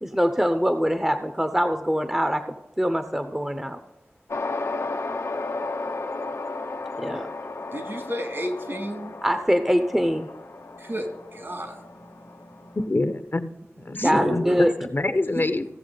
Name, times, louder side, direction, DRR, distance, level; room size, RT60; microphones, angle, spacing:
voice 1, 0.0-2.4 2.8-3.8 7.0-7.3 9.2-10.3 14.0-14.7, equal, 10° right, 7 dB, 0.7 m, -23 dB
sound 1, 4.3-12.8, left 3 dB, 85° left, 0.8 m, -34 dB
voice 2, 7.7-9.1 10.8-12.8 13.9-14.9 15.3-15.5, equal, 55° right, 4 dB, 2.2 m, -32 dB
voice 3, 12.8-13.5 13.8-14.7 14.9-15.7, left 2 dB, 45° left, 10 dB, 0.7 m, -26 dB
16.0 x 7.0 x 3.9 m, 1.0 s
wide cardioid pair, 45°, 5 cm